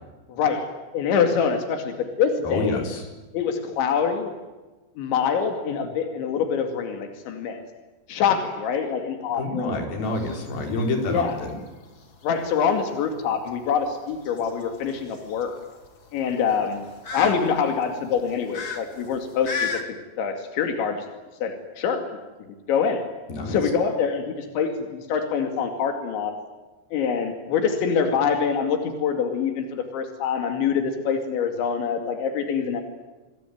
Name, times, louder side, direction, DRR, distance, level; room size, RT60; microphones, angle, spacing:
voice 1, 0.3-0.7 0.9-2.8 3.3-4.3 5.0-7.6 8.1-9.4 11.1-11.3 12.2-15.6 16.1-16.9 17.1-19.7 20.2-21.1 21.4-22.1 22.7-23.0 23.5-26.3 26.9-32.8, left 6 dB, 90° left, 6 dB, 4.7 m, -25 dB
voice 2, 2.4-3.0 9.4-11.6 23.3-23.6, left 2 dB, 55° left, 3 dB, 6.1 m, -27 dB
sound 1, 10.0-19.8, left 4 dB, 35° left, 2.6 m, -37 dB
28.5 x 21.5 x 9.3 m, 1.2 s
omnidirectional pair, 5.1 m